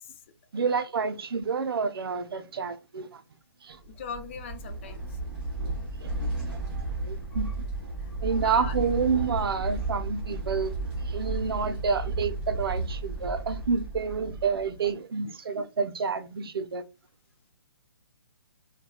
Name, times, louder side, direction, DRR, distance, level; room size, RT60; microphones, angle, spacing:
voice 1, 0.5-3.2 3.6-3.8 6.0-6.1 6.4-6.6 7.0-7.5 8.2-10.8 11.1-16.8, right 5 dB, 75° right, 0.5 m, -29 dB
voice 2, 3.8-5.1 8.4-8.7, left 6 dB, 30° left, 0.4 m, -39 dB
sound 1, 3.8-14.9, right 2 dB, 5° right, 0.7 m, -33 dB
2.7 x 2.3 x 2.2 m
hypercardioid pair, 155°, 13 cm